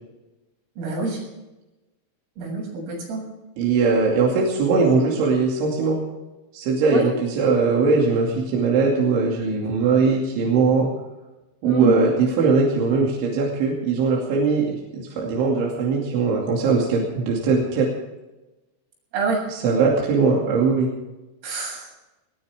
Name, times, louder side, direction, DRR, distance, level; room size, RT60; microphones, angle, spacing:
voice 1, 0.8-1.2 2.4-3.2 6.9-7.1 11.6-12.0 19.1-19.4 21.4-21.9, right 4 dB, 85° right, -1 dB, 9.7 m, -26 dB
voice 2, 3.6-6.0 6.5-10.9 11.6-17.9 19.6-20.9, right 4 dB, 70° right, -2 dB, 4.9 m, -20 dB
20.0 x 19.5 x 3.6 m, 1.0 s
omnidirectional pair, 5.8 m